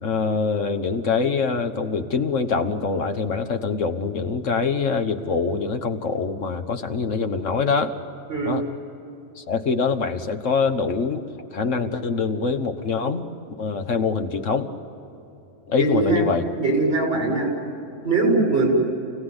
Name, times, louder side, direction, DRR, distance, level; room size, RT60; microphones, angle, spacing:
voice 1, 0.0-7.9 8.4-8.7 9.4-11.2 11.5-13.3 13.6-14.7 15.7-16.4, left 5 dB, 85° left, 7 dB, 1.7 m, -24 dB
voice 2, 15.8-16.2 16.6-17.5 18.0-18.7, right 3 dB, 55° right, 0 dB, 7.2 m, -21 dB
29.0 x 17.5 x 9.8 m, 2.9 s
omnidirectional pair, 1.3 m